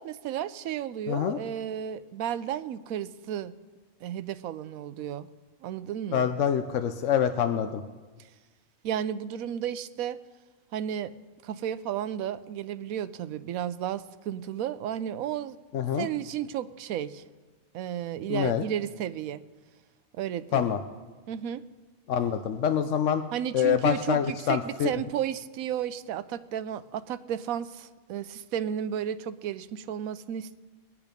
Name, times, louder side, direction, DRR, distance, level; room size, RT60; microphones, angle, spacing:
voice 1, 0.0-3.5 4.0-5.3 5.6-6.3 8.8-10.2 10.7-11.1 11.4-15.6 16.0-17.2 17.7-19.4 20.1-20.7 21.3-21.6 23.3-30.6, right 10 dB, 80° right, 14 dB, 1.0 m, -33 dB
voice 2, 1.1-1.4 6.1-7.8 15.7-16.1 18.3-18.6 20.5-20.8 22.1-23.2 23.5-24.9, left 8 dB, 65° left, 8 dB, 0.9 m, -26 dB
22.5 x 8.8 x 5.2 m, 1.3 s
omnidirectional pair, 1.5 m